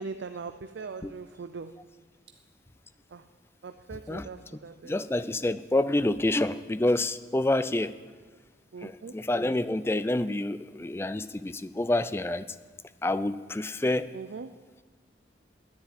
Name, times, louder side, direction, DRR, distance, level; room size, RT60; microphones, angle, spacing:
voice 1, 0.0-1.7 3.1-3.2 3.6-4.9 8.7-9.1 14.1-14.5, right 4 dB, 80° right, 10 dB, 0.5 m, -40 dB
voice 2, 4.8-7.9 8.8-12.4 13.0-14.1, left 1 dB, 15° left, 14 dB, 0.3 m, -28 dB
10.5 x 10.0 x 9.0 m, 1.4 s
head